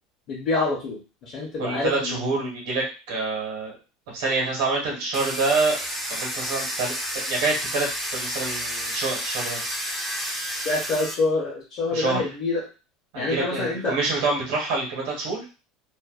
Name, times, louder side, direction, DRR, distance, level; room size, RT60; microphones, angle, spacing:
voice 1, 0.3-2.3 10.6-12.7 13.2-14.0, left 3 dB, 45° left, -4 dB, 0.8 m, -26 dB
voice 2, 1.6-3.8 4.1-5.8 6.1-9.6 11.9-12.2 13.1-15.4, right 3 dB, 75° right, -2 dB, 1.1 m, -27 dB
Domestic sounds home sounds, 5.1-11.1, equal, 5° right, 0.4 m, -30 dB
2.5 x 2.1 x 2.4 m, 0.32 s
cardioid pair, 155°, 0 cm